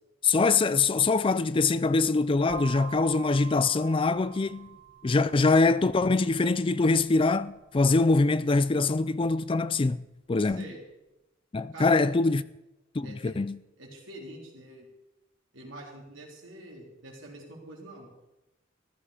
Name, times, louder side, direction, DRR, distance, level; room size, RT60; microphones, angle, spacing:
voice 1, 0.2-4.7 5.0-10.0 10.3-10.6 11.5-12.4 12.9-13.6, left 3 dB, 25° left, 0.4 m, -24 dB
sound 1, 2.5-10.3, right 10 dB, 65° right, 1.1 m, -47 dB
voice 2, 10.4-10.8 11.7-12.1 13.0-13.3 13.8-14.9 15.5-18.1, right 1 dB, 85° right, 3.9 m, -45 dB
14.5 x 12.5 x 5.0 m
head